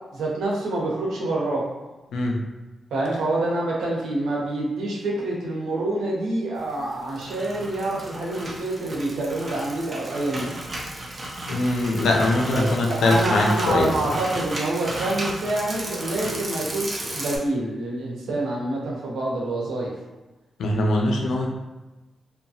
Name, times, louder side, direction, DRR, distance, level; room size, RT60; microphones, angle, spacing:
voice 1, 0.1-1.6 2.9-10.5 12.4-19.9, right 2 dB, 90° right, -3 dB, 0.7 m, -27 dB
sound 1, 6.9-17.4, right 1 dB, 35° right, 0.6 m, -34 dB
voice 2, 11.5-13.9 20.6-21.5, left 2 dB, 85° left, 0 dB, 0.5 m, -22 dB
2.7 x 2.2 x 2.7 m, 1.1 s
cardioid pair, 75°, 0 cm